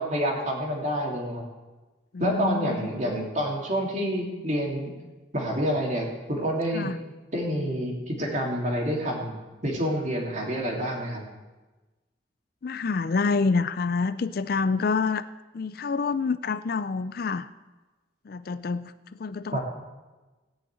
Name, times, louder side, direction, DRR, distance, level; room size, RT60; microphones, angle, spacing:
voice 1, 0.0-1.4 2.2-4.9 5.3-6.9 7.3-9.3 9.6-11.2 19.5-19.6, equal, 40° right, -1 dB, 2.8 m, -28 dB
voice 2, 2.1-3.1 6.7-7.0 12.6-15.2 15.5-17.5 18.3-18.9 19.2-19.6, left 4 dB, 50° left, 13 dB, 0.4 m, -27 dB
16.0 x 6.2 x 8.9 m, 1.2 s
head